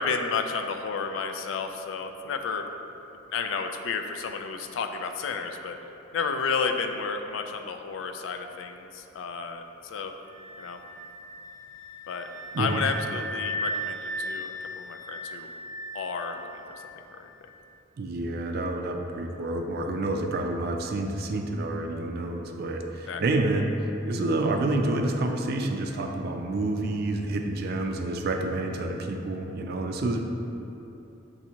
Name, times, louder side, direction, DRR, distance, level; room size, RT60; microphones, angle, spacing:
voice 1, 0.0-2.7 3.3-5.8 6.1-10.1 10.6-10.8 12.1-12.3 12.6-15.5 15.9-16.5 17.2-17.3 23.1-23.2, left 5 dB, 80° left, 6 dB, 0.3 m, -31 dB
sound 1, 10.2-17.0, right 1 dB, 20° right, 0.7 m, -37 dB
voice 2, 12.5-12.8 18.0-23.7 24.1-30.2, right 2 dB, 55° right, 3 dB, 0.4 m, -28 dB
7.0 x 2.6 x 2.8 m, 2.9 s
head